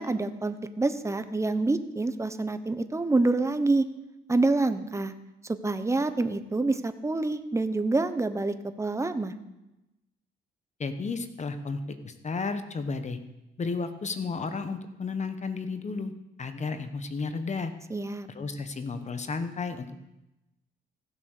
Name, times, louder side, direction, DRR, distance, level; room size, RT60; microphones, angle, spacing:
voice 1, 0.0-3.8 4.3-5.1 5.6-9.3 17.9-18.3, right 2 dB, 15° right, 11 dB, 0.9 m, -27 dB
voice 2, 10.8-13.2 13.6-16.1 16.4-17.7 18.3-20.0, left 4 dB, 35° left, 9 dB, 1.2 m, -33 dB
15.0 x 7.4 x 6.6 m, 0.96 s
cardioid pair, 90°, 20 cm